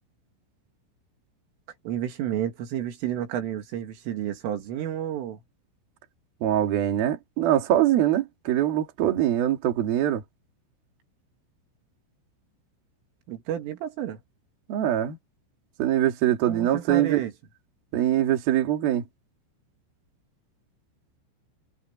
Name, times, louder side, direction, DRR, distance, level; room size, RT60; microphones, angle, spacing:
voice 1, 1.8-5.4 13.3-14.2 16.4-17.3, right 11 dB, 75° right, 4.9 m, -31 dB
voice 2, 6.4-10.2 14.7-15.2 15.8-17.2 17.9-19.0, right 12 dB, 55° right, 3.9 m, -23 dB
omnidirectional pair, 5.8 m